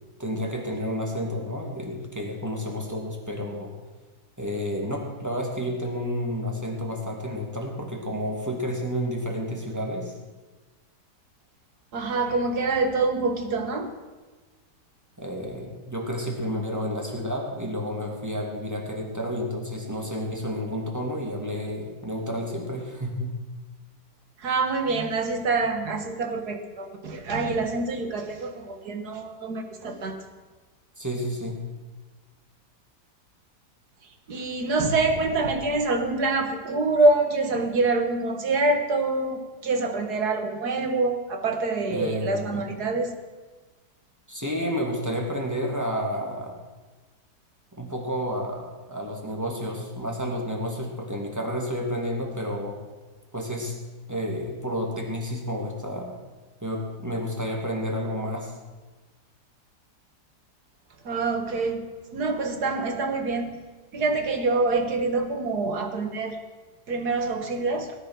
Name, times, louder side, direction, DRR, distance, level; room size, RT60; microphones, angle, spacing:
voice 1, 0.2-3.7 4.4-10.1 15.2-23.3 31.0-31.6 41.9-42.6 44.3-46.5 47.7-52.8 53.3-53.8 54.1-56.2 56.6-58.5, equal, 10° right, 0 dB, 2.6 m, -30 dB
voice 2, 11.9-13.9 24.4-30.2 34.3-43.1 61.0-63.6 63.9-66.4 66.9-68.0, right 3 dB, 65° right, 6 dB, 2.1 m, -26 dB
18.0 x 9.8 x 6.3 m, 1.3 s
omnidirectional pair, 1.8 m